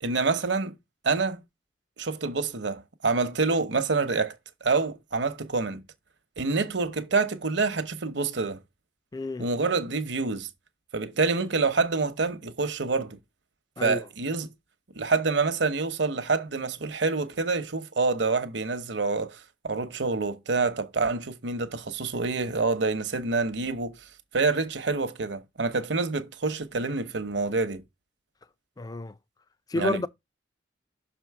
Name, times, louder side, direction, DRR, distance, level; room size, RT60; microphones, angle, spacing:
voice 1, 0.0-0.7 1.0-1.4 2.0-4.4 4.6-5.8 6.4-8.6 9.4-10.5 10.9-13.2 13.8-14.5 15.0-23.9 24.3-27.8 29.7-30.1, right 4 dB, 65° right, 0.9 m, -27 dB
voice 2, 9.1-9.5 13.8-14.1 28.8-29.2 29.7-30.1, left 2 dB, 20° left, 0.3 m, -30 dB
6.1 x 4.4 x 4.7 m
head